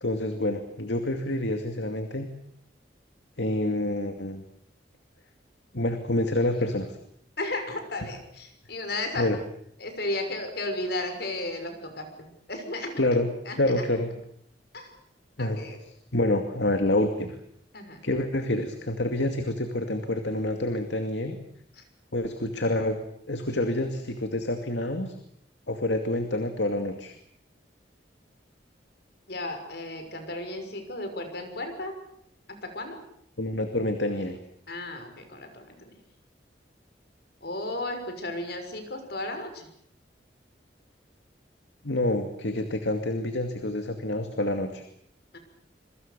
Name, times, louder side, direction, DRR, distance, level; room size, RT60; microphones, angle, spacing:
voice 1, 0.0-2.3 3.4-4.4 5.7-6.9 9.2-9.4 13.0-13.3 13.6-14.1 15.4-15.6 16.1-17.3 18.0-21.4 22.1-23.0 23.3-25.1 25.7-27.1 33.4-34.4 41.8-44.8, left 1 dB, 80° left, 6 dB, 2.4 m, -27 dB
voice 2, 7.4-9.3 9.8-13.0 13.5-13.8 14.7-14.9 15.4-15.8 17.7-18.0 21.8-21.9 29.3-31.9 32.5-33.0 34.7-35.9 37.4-39.7 45.3-45.4, left 2 dB, 65° left, 6 dB, 6.3 m, -34 dB
27.0 x 24.0 x 6.9 m, 0.69 s
head